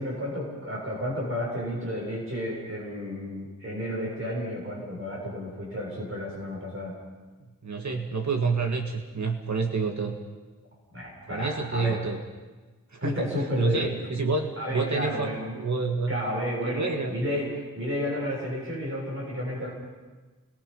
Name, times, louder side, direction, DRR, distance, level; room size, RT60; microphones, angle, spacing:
voice 1, 0.0-7.0 10.9-12.0 13.0-13.9 14.6-15.6 16.1-19.7, equal, 40° right, -3 dB, 7.3 m, -32 dB
voice 2, 7.6-10.2 11.3-12.2 12.9-13.2 13.6-16.2 16.6-17.2, right 4 dB, 60° right, 3 dB, 1.9 m, -28 dB
30.0 x 22.0 x 5.5 m, 1.3 s
wide cardioid pair, 125°, 33 cm